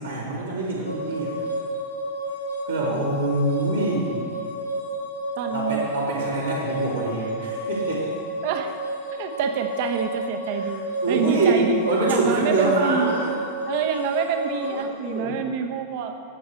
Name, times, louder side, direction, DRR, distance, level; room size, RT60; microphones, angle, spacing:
voice 1, 0.0-1.3 2.7-4.1 5.5-8.0 11.0-13.3 14.6-15.4, right 2 dB, 75° right, -7 dB, 3.3 m, -25 dB
sound 1, 0.8-14.8, right 1 dB, 85° left, 2.8 m, -31 dB
voice 2, 5.4-5.9 8.4-8.8 9.1-10.8 11.1-11.8 12.1-13.1 13.6-16.1, right 7 dB, 50° right, 6 dB, 1.0 m, -27 dB
16.5 x 6.8 x 4.5 m, 2.3 s
figure-of-eight pair, 90°, 0 cm